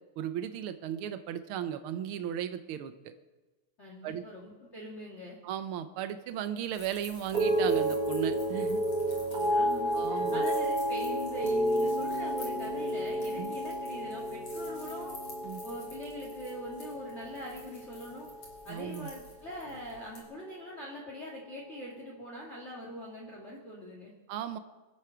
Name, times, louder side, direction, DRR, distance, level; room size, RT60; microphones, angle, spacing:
voice 1, 0.2-3.1 4.0-4.2 5.4-8.8 9.9-10.4 13.4-13.5 15.4-15.6 18.7-19.1 24.3-24.6, right 10 dB, 65° right, 10 dB, 1.4 m, -36 dB
voice 2, 3.8-5.4 9.3-15.1 15.6-18.3 18.6-24.1, equal, 25° left, -4 dB, 2.3 m, -42 dB
sound 1, 6.7-20.2, left 2 dB, 55° left, 4.9 m, -52 dB
sound 2, 7.3-17.7 18.0-18.6, right 1 dB, 50° right, 3.1 m, -31 dB
25.0 x 8.6 x 5.8 m, 1.1 s
omnidirectional pair, 3.3 m